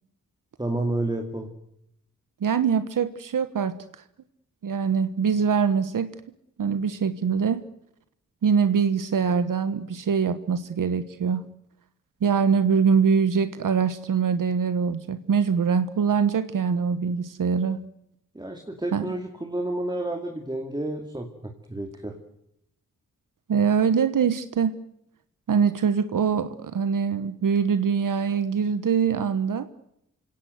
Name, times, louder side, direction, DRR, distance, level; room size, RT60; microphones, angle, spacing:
voice 1, 0.6-1.5 18.3-22.2, right 1 dB, 15° right, 4 dB, 2.5 m, -30 dB
voice 2, 2.4-3.8 4.6-6.1 6.6-7.6 8.4-11.5 12.2-17.8 18.9-19.1 23.5-24.7 25.5-29.7, right 6 dB, 75° right, 12 dB, 1.3 m, -23 dB
28.5 x 17.5 x 7.8 m, 0.79 s
wide cardioid pair, 115°, 32 cm